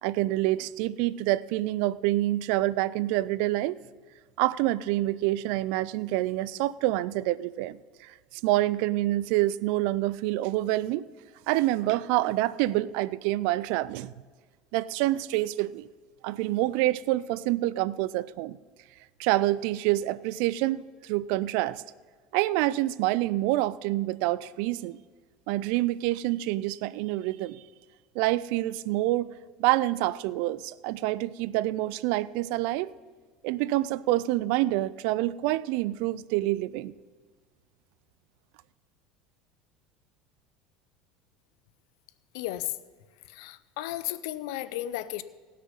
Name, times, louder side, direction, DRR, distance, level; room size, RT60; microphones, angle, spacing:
voice 1, 0.0-3.8 4.4-7.8 8.4-11.1 11.5-14.1 14.7-15.9 16.2-18.6 19.2-21.8 22.3-25.0 25.5-27.6 28.2-29.3 29.6-32.9 33.4-36.9, right 16 dB, 70° right, 20 dB, 0.4 m, -27 dB
voice 2, 42.3-42.7 43.3-45.2, left 14 dB, 75° left, 16 dB, 0.6 m, -34 dB
18.0 x 6.4 x 5.5 m, 1.4 s
supercardioid pair, 105°, 2 cm